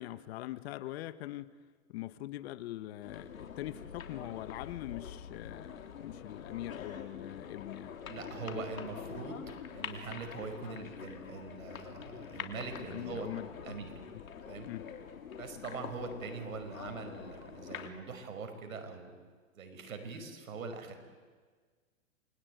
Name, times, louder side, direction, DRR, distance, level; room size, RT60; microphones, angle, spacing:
voice 1, 0.0-1.6 1.9-7.9 12.8-13.7 14.6-14.9, left 15 dB, 50° left, 15 dB, 1.3 m, -43 dB
sound 1, 3.0-17.9, left 7 dB, 90° left, 3.2 m, -45 dB
voice 2, 8.1-13.3 13.6-13.9 14.4-14.7 15.4-19.2 19.6-21.0, right 4 dB, 90° right, 6 dB, 5.4 m, -42 dB
27.5 x 22.0 x 9.4 m, 1.5 s
hypercardioid pair, 140°, 40 cm